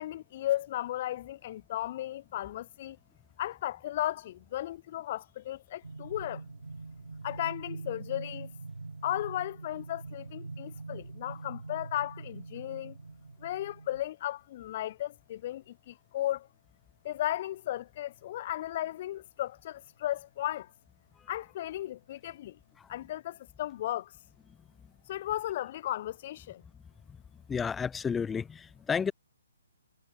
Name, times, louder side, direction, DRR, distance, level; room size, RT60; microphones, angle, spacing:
voice 1, 0.0-3.0 3.4-6.4 7.2-8.5 9.0-13.0 13.4-16.5 17.0-20.7 21.3-22.6 22.9-24.1 25.1-26.6, left 13 dB, 40° left, 0.9 m, -35 dB
sound 1, 5.8-14.0, right 3 dB, 85° right, 4.6 m, -44 dB
voice 2, 27.5-29.1, left 6 dB, 10° left, 0.6 m, -31 dB
figure-of-eight pair, 140°, 0 cm